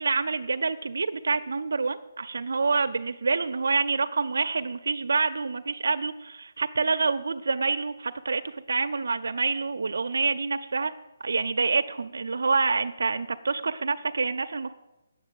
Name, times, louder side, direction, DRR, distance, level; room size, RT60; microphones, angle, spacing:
voice 1, 0.0-10.9 11.2-14.7, right 4 dB, 85° right, 8 dB, 0.5 m, -27 dB
8.7 x 7.2 x 7.6 m, 1.0 s
hypercardioid pair, 175°, 0 cm